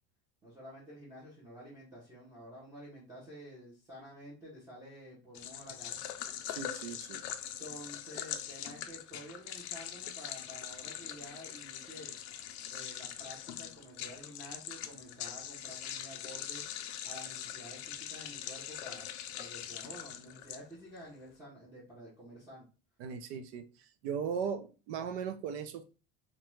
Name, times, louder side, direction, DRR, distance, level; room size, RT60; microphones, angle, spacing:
voice 1, 0.4-6.0 7.6-12.1 12.7-16.6 17.0-19.1 19.4-22.7, equal, 10° right, 0.7 m, -50 dB
sound 1, 5.3-21.0, left 10 dB, 80° left, 0.5 m, -42 dB
voice 2, 6.5-7.2 23.0-23.7 24.0-25.8, right 7 dB, 75° right, 0.5 m, -37 dB
2.6 x 2.2 x 3.0 m
cardioid pair, 165°, 33 cm